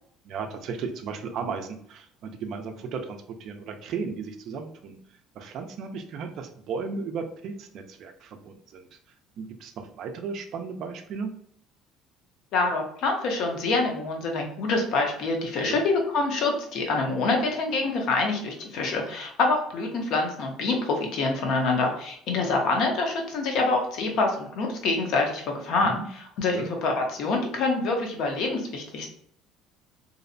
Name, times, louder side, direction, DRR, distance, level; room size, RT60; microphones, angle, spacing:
voice 1, 0.2-5.0 5.4-9.0 9.4-11.3 15.7-15.8 25.8-26.0 26.5-26.7, right 5 dB, 50° right, 6 dB, 0.3 m, -35 dB
voice 2, 12.5-26.0 26.4-29.1, left 3 dB, 60° left, 2 dB, 0.6 m, -26 dB
2.6 x 2.0 x 2.5 m, 0.66 s
cardioid pair, 150°, 0 cm